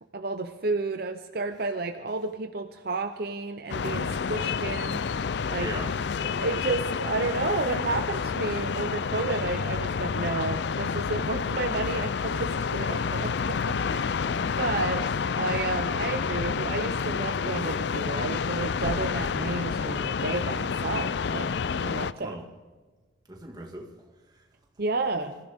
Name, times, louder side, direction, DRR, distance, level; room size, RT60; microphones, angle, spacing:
voice 1, 0.1-5.0 5.5-5.7 6.2-14.2 14.6-21.5 21.8-22.4 24.8-25.3, right 3 dB, 50° right, 7 dB, 0.7 m, -31 dB
sound 1, 3.7-22.1, left 5 dB, 60° left, 0.4 m, -29 dB
voice 2, 5.5-5.9 14.3-14.4 22.2-22.4 23.3-24.4 25.1-25.3, right 1 dB, 20° right, 1 dB, 1.9 m, -40 dB
26.0 x 15.0 x 3.6 m, 1.4 s
head